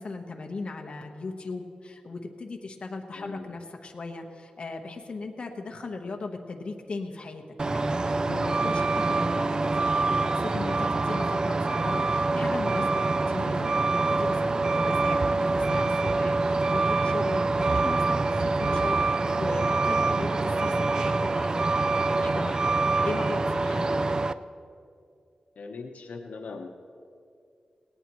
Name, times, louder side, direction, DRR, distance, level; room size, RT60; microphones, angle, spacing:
voice 1, 0.0-13.7 14.1-18.0 18.4-24.1, left 3 dB, 45° left, 2 dB, 1.1 m, -38 dB
voice 2, 3.1-3.5 25.6-26.7, left 4 dB, 75° left, 3 dB, 1.0 m, -40 dB
Truck, 7.6-24.3, right 3 dB, 30° right, 0.3 m, -25 dB
18.0 x 17.5 x 3.0 m, 2.3 s
wide cardioid pair, 155°, 3 cm